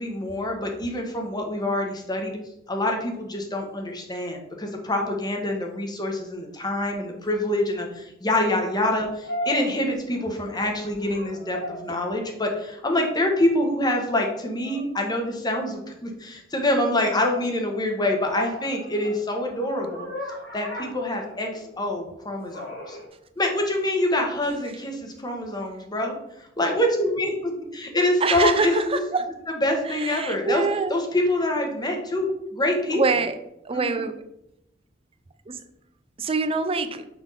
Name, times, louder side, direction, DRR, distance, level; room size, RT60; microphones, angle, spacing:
voice 1, 0.0-2.4 2.7-20.1 20.5-23.0 23.4-29.0 29.6-30.6 30.9-32.3 32.5-33.0 33.7-34.0, left 1 dB, 20° left, 2 dB, 1.1 m, -26 dB
sound 1, 9.2-10.5 10.9-12.0 14.6-14.9 18.3-21.8 22.5-23.1, left 1 dB, 90° left, 2.6 m, -36 dB
voice 2, 28.2-29.3 29.9-31.0 32.9-33.4 33.6-34.2 35.5-35.6 36.2-37.1, right 4 dB, 30° right, 10 dB, 0.5 m, -25 dB
6.0 x 3.5 x 5.5 m, 0.82 s
head